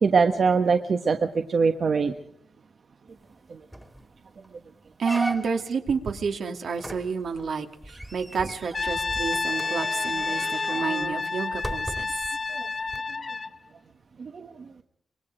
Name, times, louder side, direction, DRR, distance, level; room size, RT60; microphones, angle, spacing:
voice 1, 0.0-2.1 3.5-3.6 10.4-10.5 12.5-12.7 14.2-14.6, right 5 dB, 60° right, 6 dB, 1.4 m, -23 dB
sound 1, 3.3-3.4 3.7-4.0 4.4-4.5 5.0-5.8 6.8-12.3 12.9-13.0, right 1 dB, 10° right, 2.0 m, -37 dB
voice 2, 5.0-12.1, right 5 dB, 80° right, 4 dB, 2.5 m, -30 dB
Brass instrument, 8.7-13.6, left 4 dB, 45° left, 0.9 m, -29 dB
25.5 x 22.5 x 5.1 m, 0.66 s
cardioid pair, 85°, 0 cm